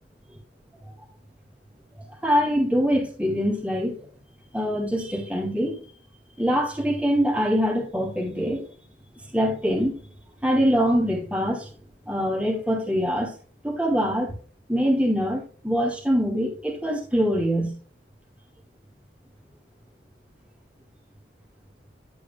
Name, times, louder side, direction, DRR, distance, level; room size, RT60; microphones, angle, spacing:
voice 1, 2.2-4.0 4.5-5.8 6.4-8.6 9.3-9.9 10.4-11.7 12.1-13.3 13.6-14.3 14.7-17.8, equal, 5° right, 2.6 m, -23 dB
11.5 x 8.6 x 2.3 m
head